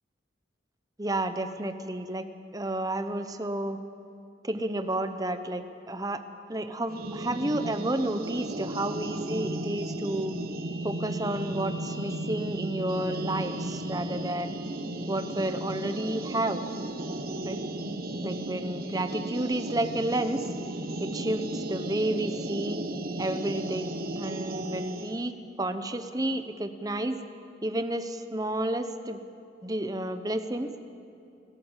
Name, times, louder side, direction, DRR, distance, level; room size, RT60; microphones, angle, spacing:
voice 1, 1.0-2.2 2.5-3.8 4.4-6.2 6.5-10.4 10.8-14.6 15.1-16.6 17.4-17.6 18.2-20.4 21.0-22.8 23.2-25.3 25.6-27.2 27.6-29.2 29.6-30.7, right 1 dB, 20° right, 9 dB, 0.9 m, -31 dB
sound 1, 6.9-25.2, right 1 dB, 55° right, 1.2 m, -35 dB
27.5 x 13.0 x 7.3 m, 2.7 s
head